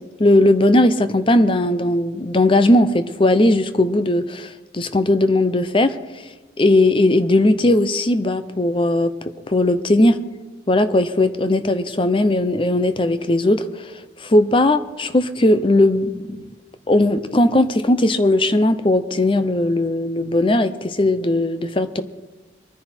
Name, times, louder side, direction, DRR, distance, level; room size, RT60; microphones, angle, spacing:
voice 1, 0.2-6.0 6.6-10.2 10.7-13.9 14.2-16.5 16.9-22.0, left 1 dB, 25° left, 11 dB, 0.7 m, -18 dB
23.5 x 10.0 x 4.4 m, 1.2 s
head